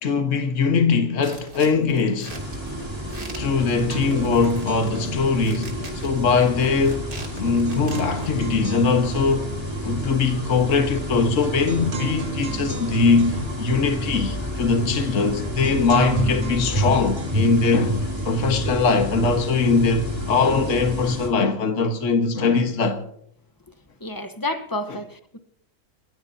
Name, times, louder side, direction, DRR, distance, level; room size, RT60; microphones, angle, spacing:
voice 1, 0.0-2.4 3.4-7.1 7.4-9.5 9.8-18.0 18.3-23.0 24.9-25.0, left 4 dB, 60° left, 1.7 m, -21 dB
sound 1, 1.2-8.4, right 2 dB, 80° right, 3.7 m, -43 dB
sound 2, 2.3-21.3, equal, 15° right, 3.8 m, -30 dB
sound 3, 3.0-3.1 3.4-18.9, right 3 dB, 50° right, 1.8 m, -36 dB
voice 2, 24.0-25.4, left 1 dB, 15° left, 1.0 m, -30 dB
28.0 x 15.5 x 2.8 m
omnidirectional pair, 1.5 m